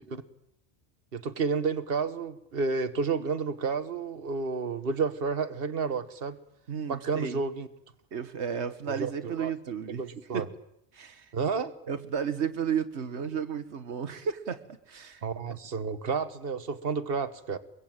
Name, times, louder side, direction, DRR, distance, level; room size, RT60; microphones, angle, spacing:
voice 1, 1.1-6.4 6.9-7.7 8.9-9.5 9.9-10.4 11.3-11.7 15.2-17.6, right 5 dB, 60° right, 11 dB, 1.6 m, -31 dB
voice 2, 6.7-7.4 8.1-10.0 10.3-10.5 10.9-11.3 11.9-15.5, right 7 dB, 85° right, 9 dB, 1.6 m, -33 dB
24.5 x 22.0 x 9.0 m, 0.77 s
omnidirectional pair, 1.1 m